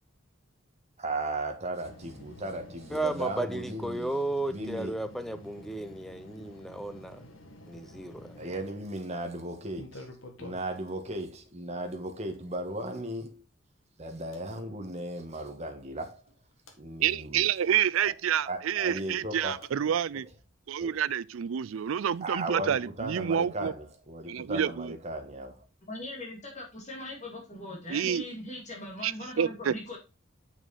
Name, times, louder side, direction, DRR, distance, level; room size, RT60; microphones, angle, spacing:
voice 1, 1.0-4.1 4.5-4.9 8.4-10.1 10.4-13.4 14.0-16.2 16.8-17.5 18.0-18.1 18.4-19.7 20.8-21.0 22.2-25.6, right 1 dB, 30° right, 1.4 m, -36 dB
sound 1, 1.8-8.9 9.7-10.9 12.3-12.4 14.3-14.4 16.3-16.8 19.6-19.7, left 1 dB, 75° left, 1.7 m, -49 dB
voice 2, 2.9-7.2 7.7-8.4, right 2 dB, ahead, 0.5 m, -34 dB
voice 3, 17.0-20.3 20.7-23.7 24.3-25.0 27.9-28.2 29.0-29.7, right 9 dB, 80° right, 0.4 m, -28 dB
voice 4, 25.9-30.0, left 1 dB, 35° left, 2.6 m, -40 dB
7.2 x 6.0 x 4.1 m
head